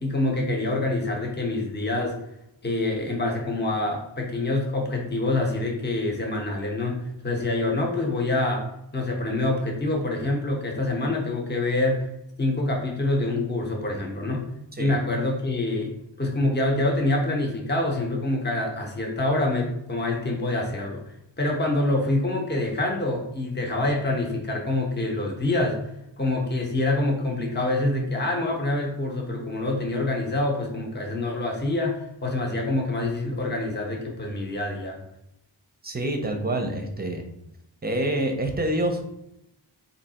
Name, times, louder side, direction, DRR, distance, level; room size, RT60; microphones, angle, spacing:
voice 1, 0.0-2.2 2.6-8.6 8.9-12.1 12.4-14.5 14.8-15.9 16.2-21.0 21.4-25.8 26.2-35.0, left 2 dB, 25° left, 0 dB, 0.9 m, -26 dB
voice 2, 35.8-37.3 37.8-39.0, right 1 dB, 20° right, 4 dB, 0.7 m, -27 dB
3.3 x 2.7 x 4.2 m, 0.83 s
wide cardioid pair, 75°, 44 cm